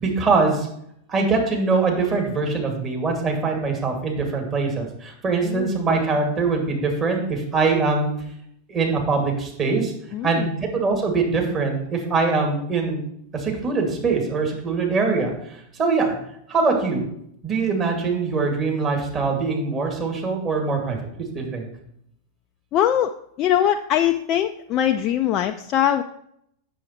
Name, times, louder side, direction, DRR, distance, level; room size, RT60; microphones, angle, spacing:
voice 1, 0.0-0.7 1.1-8.1 8.7-9.9 10.2-13.0 13.3-16.1 16.5-17.1 17.4-21.0 21.3-21.7, right 4 dB, 25° right, 1 dB, 2.3 m, -23 dB
voice 2, 10.1-10.5 22.7-23.1 23.4-26.0, left 11 dB, 35° left, 6 dB, 0.4 m, -21 dB
8.3 x 7.0 x 4.4 m, 0.73 s
figure-of-eight pair, 90°, 0 cm